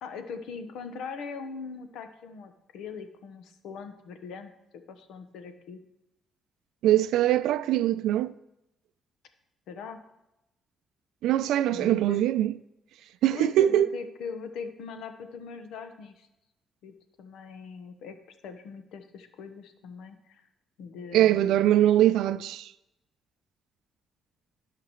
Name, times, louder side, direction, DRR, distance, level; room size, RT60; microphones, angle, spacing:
voice 1, 0.0-4.5 4.9-5.8 9.7-10.0 11.7-12.2 13.3-16.3 16.8-18.2 18.4-20.5 20.8-21.9, left 5 dB, 85° left, 1.0 m, -41 dB
voice 2, 6.8-8.3 11.2-12.6 13.2-13.9 21.1-22.7, right 12 dB, 85° right, 0.4 m, -22 dB
16.5 x 5.8 x 3.1 m
cardioid pair, 90°, 0 cm